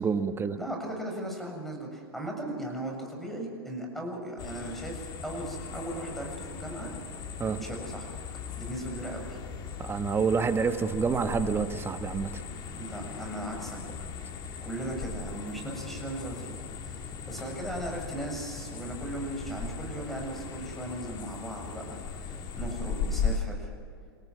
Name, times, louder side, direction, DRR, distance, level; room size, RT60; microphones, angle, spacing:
voice 1, 0.0-0.6 7.4-7.6 9.8-12.4, right 5 dB, 15° right, 9 dB, 1.4 m, -28 dB
voice 2, 0.6-6.9 7.6-8.1 8.6-9.4 12.8-13.9 14.6-16.5 16.8-23.7, right 1 dB, ahead, 1 dB, 7.4 m, -37 dB
sound 1, 4.4-23.4, left 5 dB, 35° left, 2.8 m, -38 dB
29.5 x 17.5 x 6.3 m, 2.2 s
hypercardioid pair, 105°, 13 cm